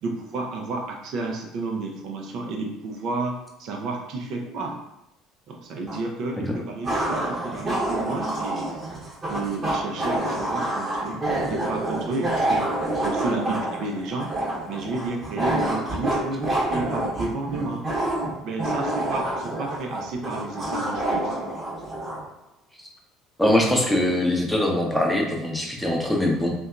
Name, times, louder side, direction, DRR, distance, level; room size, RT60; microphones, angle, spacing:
voice 1, 0.0-4.7 5.5-8.8 9.3-12.6 13.0-14.3 14.7-17.8 18.4-21.4, right 3 dB, 60° right, 1 dB, 0.4 m, -31 dB
sound 1, 5.9-6.0 6.8-22.2, right 1 dB, 30° right, 0.9 m, -27 dB
voice 2, 23.4-26.5, left 1 dB, 5° left, -1 dB, 0.6 m, -22 dB
2.7 x 2.2 x 2.3 m, 0.85 s
hypercardioid pair, 60°, 0 cm